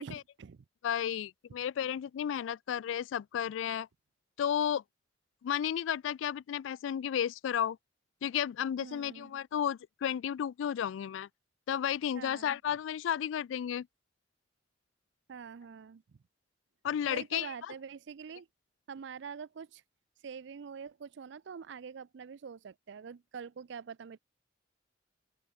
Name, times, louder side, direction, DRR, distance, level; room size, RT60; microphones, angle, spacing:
voice 1, 0.0-0.6 8.8-9.3 12.1-12.6 15.3-16.2 17.1-18.5 18.9-19.8 20.2-24.2, right 6 dB, 65° right, 0.4 m, -45 dB
voice 2, 0.8-3.9 4.4-4.8 5.4-7.8 8.2-11.3 11.7-13.9 16.8-17.5, left 9 dB, 80° left, 0.3 m, -33 dB
open air
head